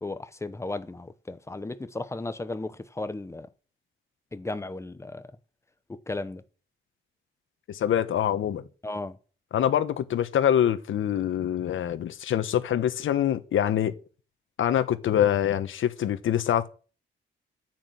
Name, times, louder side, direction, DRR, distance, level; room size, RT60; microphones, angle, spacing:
voice 1, 0.0-3.5 4.3-5.3 5.9-6.4 8.8-9.2, left 2 dB, 15° left, 0.9 m, -35 dB
voice 2, 7.7-8.7 9.5-13.9 14.6-16.7, left 10 dB, 70° left, 1.4 m, -25 dB
9.9 x 9.3 x 7.9 m
wide cardioid pair, 155°, 21 cm